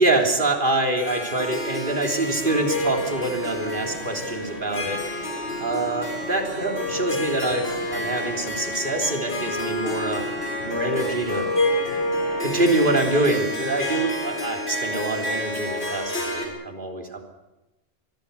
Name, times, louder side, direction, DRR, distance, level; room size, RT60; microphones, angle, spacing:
voice 1, 0.0-5.0 5.6-10.2 10.6-11.5 12.4-17.2, right 2 dB, 55° right, 2 dB, 3.5 m, -25 dB
Harp, 1.0-16.5, left 1 dB, 80° left, 5.7 m, -29 dB
sound 1, 2.2-13.1, equal, 85° right, 6.1 m, -41 dB
25.0 x 21.0 x 6.9 m, 1.0 s
omnidirectional pair, 1.1 m